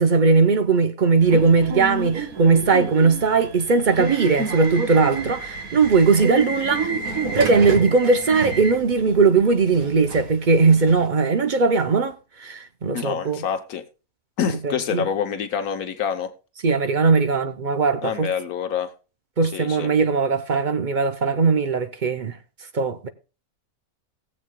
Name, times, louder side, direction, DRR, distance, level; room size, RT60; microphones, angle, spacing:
voice 1, 0.0-6.9 7.3-13.4 14.6-15.1 16.6-18.3 19.4-22.4 22.7-23.1, right 4 dB, 45° right, 0.6 m, -19 dB
Subway metro underground / Alarm, 1.2-11.1, right 3 dB, 70° right, 2.1 m, -29 dB
voice 2, 12.9-13.8 14.4-16.3 18.0-18.9 19.4-19.9, left 8 dB, 80° left, 1.3 m, -27 dB
19.5 x 7.5 x 2.2 m
omnidirectional pair, 1.5 m